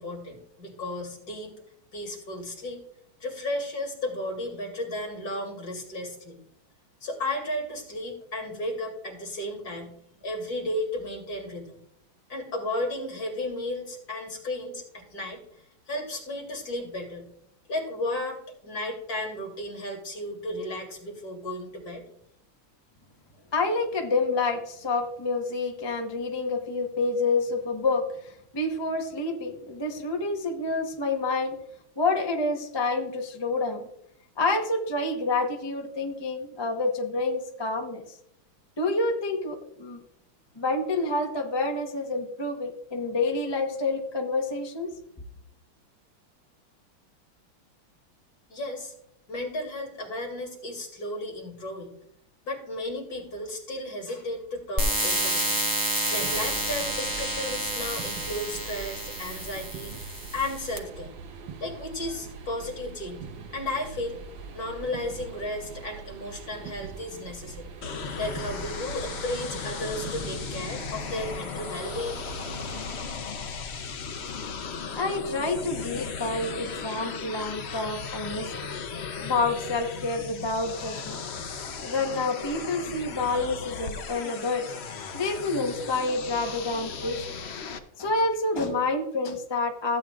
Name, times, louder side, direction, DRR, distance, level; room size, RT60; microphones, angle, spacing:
voice 1, 0.0-1.5 1.9-2.8 3.2-6.4 7.0-9.9 10.2-11.8 12.3-17.3 17.7-22.0 48.5-48.9 49.3-51.9 52.4-55.4 56.1-61.1 61.6-63.2 63.5-64.2 64.5-67.7 68.2-72.3, left 1 dB, 45° left, 1 dB, 3.0 m, -34 dB
voice 2, 23.5-31.6 32.0-33.9 34.4-38.2 38.8-40.0 40.6-44.9 74.9-78.5 79.2-84.8 85.1-87.3 88.0-90.0, left 3 dB, 20° left, 2 dB, 0.6 m, -28 dB
sound 1, 54.8-60.8, right 1 dB, 15° right, 0.7 m, -29 dB
sound 2, 56.2-73.0, right 5 dB, 70° right, 1.7 m, -42 dB
sound 3, 67.8-87.8, left 5 dB, 80° left, 0.5 m, -36 dB
15.5 x 8.8 x 2.4 m, 0.71 s
omnidirectional pair, 2.2 m